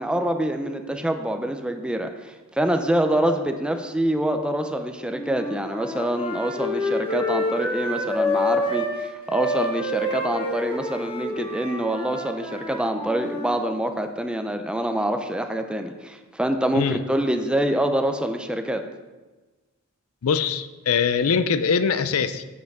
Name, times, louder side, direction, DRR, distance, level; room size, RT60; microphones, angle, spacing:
voice 1, 0.0-18.8, right 1 dB, 5° right, 6 dB, 0.5 m, -25 dB
Wind instrument woodwind instrument, 5.1-8.9 9.3-13.5, left 1 dB, 25° left, 1.8 m, -28 dB
voice 2, 20.2-22.4, left 6 dB, 70° left, 13 dB, 0.5 m, -22 dB
7.9 x 5.6 x 6.6 m, 1.2 s
head